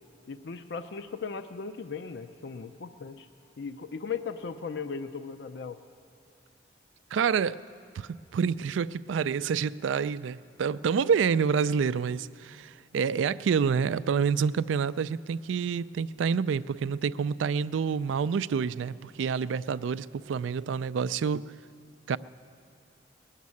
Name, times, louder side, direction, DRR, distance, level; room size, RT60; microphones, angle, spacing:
voice 1, 0.3-3.3 3.6-5.8, left 5 dB, 65° left, 9 dB, 0.5 m, -37 dB
voice 2, 7.1-7.6 7.9-21.5 22.1-22.2, right 6 dB, 85° right, 16 dB, 0.3 m, -28 dB
20.0 x 7.4 x 9.5 m, 2.4 s
head